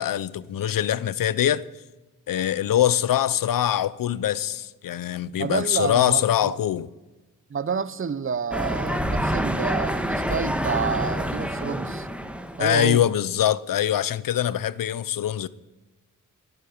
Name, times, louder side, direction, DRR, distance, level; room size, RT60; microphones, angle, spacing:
voice 1, 0.0-1.6 2.3-6.9 12.6-15.5, left 11 dB, 80° left, 0.6 m, -23 dB
voice 2, 5.4-6.6 7.5-12.1 12.6-13.1, right 6 dB, 40° right, 0.7 m, -29 dB
sound 1, 8.5-12.8, equal, 5° right, 1.3 m, -27 dB
18.0 x 8.1 x 7.1 m
cardioid pair, 85°, 33 cm